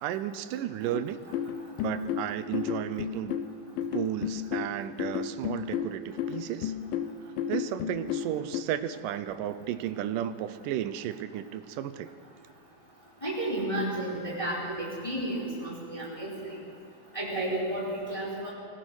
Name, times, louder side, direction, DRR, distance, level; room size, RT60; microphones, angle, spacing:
voice 1, 0.0-1.2 1.8-3.4 3.9-6.7 7.5-12.1, right 11 dB, 80° right, 12 dB, 2.3 m, -33 dB
sound 1, 0.9-8.6, left 9 dB, 85° left, 2.5 m, -32 dB
voice 2, 13.2-16.6 17.1-18.5, right 1 dB, 10° left, -6 dB, 4.4 m, -32 dB
24.5 x 17.0 x 6.3 m, 2.5 s
omnidirectional pair, 3.9 m